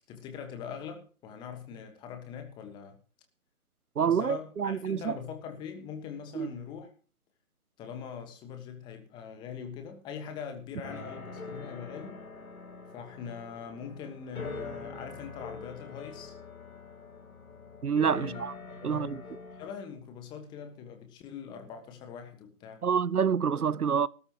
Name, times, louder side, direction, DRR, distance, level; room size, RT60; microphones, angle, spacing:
voice 1, 0.1-3.0 4.1-6.9 7.8-12.2 12.9-16.3 18.1-18.4 18.8-19.2 19.6-22.8, left 7 dB, 10° left, 1.4 m, -42 dB
voice 2, 4.0-5.1 6.3-6.5 17.8-18.5 18.8-19.2 22.8-24.1, right 7 dB, 80° right, 0.8 m, -27 dB
sound 1, 10.8-19.7, left 3 dB, 70° left, 3.5 m, -44 dB
19.5 x 12.5 x 3.0 m
figure-of-eight pair, 145°, 44 cm